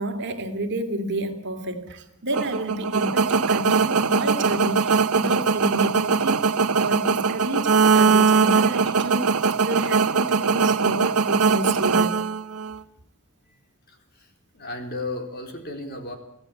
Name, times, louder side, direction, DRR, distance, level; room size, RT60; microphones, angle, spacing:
voice 1, 0.0-6.5 6.8-12.1, right 1 dB, 55° right, 6 dB, 2.8 m, -30 dB
sound 1, 2.3-12.8, right 5 dB, 90° right, 1.1 m, -21 dB
voice 2, 13.9-16.2, left 2 dB, 45° left, 4 dB, 4.1 m, -35 dB
25.0 x 16.0 x 8.7 m, 0.80 s
head